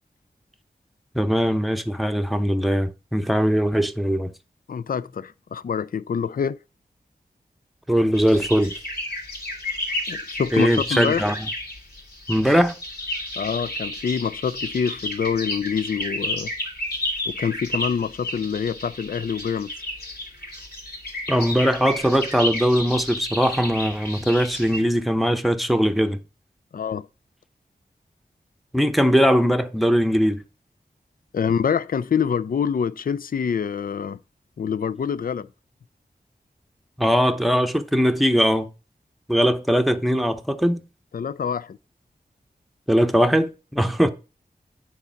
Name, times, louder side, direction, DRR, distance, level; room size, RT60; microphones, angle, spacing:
voice 1, 1.1-4.3 7.9-8.7 10.5-11.4 12.3-12.8 21.3-26.2 28.7-30.4 37.0-38.7 39.3-40.8 42.9-44.1, equal, ahead, 0.8 m, -20 dB
voice 2, 4.7-6.6 10.1-11.2 13.4-16.5 17.3-19.7 26.7-27.1 31.3-34.2 34.6-35.5 41.1-41.8, left 7 dB, 60° left, 0.4 m, -26 dB
sound 1, 8.1-24.8, left 1 dB, 75° left, 2.9 m, -32 dB
9.6 x 4.1 x 5.7 m
wide cardioid pair, 85°, 17 cm